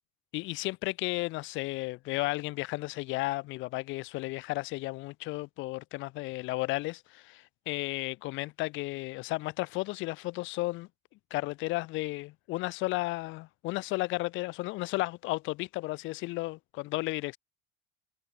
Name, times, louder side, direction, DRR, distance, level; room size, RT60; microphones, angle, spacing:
voice 1, 0.3-10.9 11.3-17.4, left 21 dB, 65° left, 4.8 m, -33 dB
cardioid pair, 130°, 21 cm